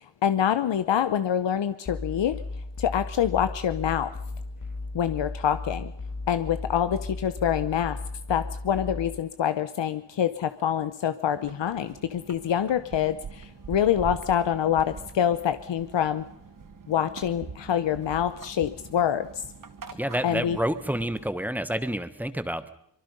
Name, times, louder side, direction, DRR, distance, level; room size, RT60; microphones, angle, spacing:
voice 1, 0.0-2.4 2.8-4.1 4.9-5.9 6.3-8.0 8.3-16.3 16.9-19.4 20.2-20.6, left 9 dB, 85° left, 11 dB, 0.9 m, -26 dB
sound 1, 1.9-9.2, left 3 dB, 40° left, 1.7 m, -36 dB
sound 2, 11.3-21.3, right 5 dB, 45° right, 1.2 m, -44 dB
voice 2, 19.9-22.7, equal, 5° right, 11 dB, 1.3 m, -29 dB
24.5 x 23.5 x 5.4 m, 0.73 s
wide cardioid pair, 125°, 43 cm